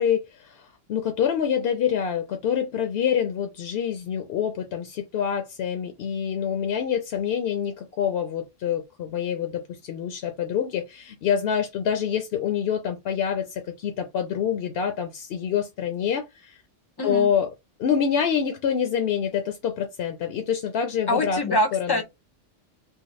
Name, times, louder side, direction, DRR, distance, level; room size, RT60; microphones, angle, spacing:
voice 1, 0.0-16.6 17.0-17.5 17.8-22.0, left 8 dB, 65° left, 0.7 m, -26 dB
voice 2, 17.0-17.3 21.1-22.0, left 1 dB, 30° left, 0.5 m, -24 dB
3.5 x 2.0 x 3.0 m
omnidirectional pair, 1.3 m